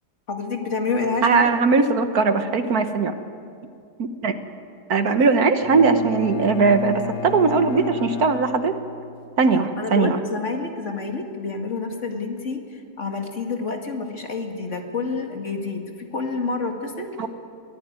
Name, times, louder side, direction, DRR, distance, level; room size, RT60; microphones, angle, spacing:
voice 1, 0.3-1.5 9.8-17.1, left 4 dB, 45° left, 3 dB, 2.3 m, -28 dB
voice 2, 1.2-3.1 4.0-4.3 4.9-8.7 9.4-10.2 17.2-17.3, right 4 dB, 65° right, 8 dB, 1.6 m, -19 dB
Bowed string instrument, 5.6-9.5, left 9 dB, 80° left, 1.5 m, -34 dB
23.0 x 16.0 x 9.6 m, 2.4 s
omnidirectional pair, 1.8 m